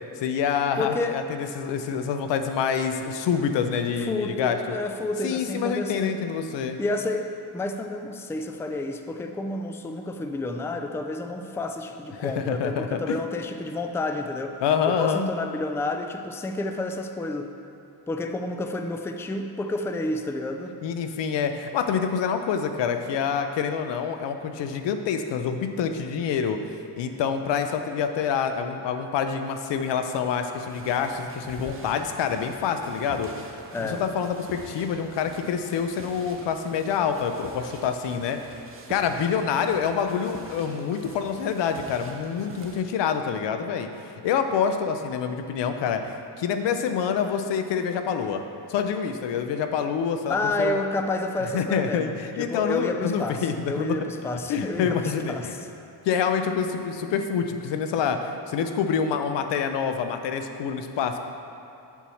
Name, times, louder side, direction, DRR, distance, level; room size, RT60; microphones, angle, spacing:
voice 1, 0.2-4.6 5.2-6.8 12.2-13.1 14.6-15.3 20.8-26.6 27.0-33.3 33.8-38.6 38.9-43.9 44.2-50.8 51.5-54.0 54.5-55.5 56.0-61.2, left 7 dB, 85° left, 7 dB, 0.7 m, -27 dB
voice 2, 0.8-1.2 4.1-6.1 6.8-14.6 14.9-17.5 18.1-20.8 33.7-34.0 50.3-52.1 52.4-55.6, left 2 dB, 5° left, 5 dB, 0.3 m, -30 dB
sound 1, 30.6-42.8, right 3 dB, 30° right, 0.9 m, -45 dB
7.2 x 4.6 x 7.0 m, 2.8 s
cardioid pair, 110°, 42 cm